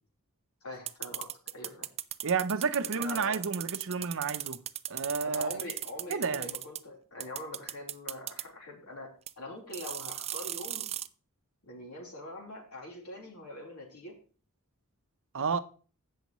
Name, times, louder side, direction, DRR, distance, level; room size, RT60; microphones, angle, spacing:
voice 1, 0.6-1.9 2.9-3.4 5.2-10.9 11.6-14.2, left 1 dB, 70° left, 3.7 m, -43 dB
sound 1, 0.9-6.8 7.2-8.4 9.3-9.4 9.7-11.1, right 11 dB, 30° right, 0.4 m, -37 dB
voice 2, 2.2-4.6 4.9-5.6 6.1-6.5 15.3-15.6, right 5 dB, 65° right, 0.7 m, -31 dB
16.5 x 6.4 x 3.1 m
head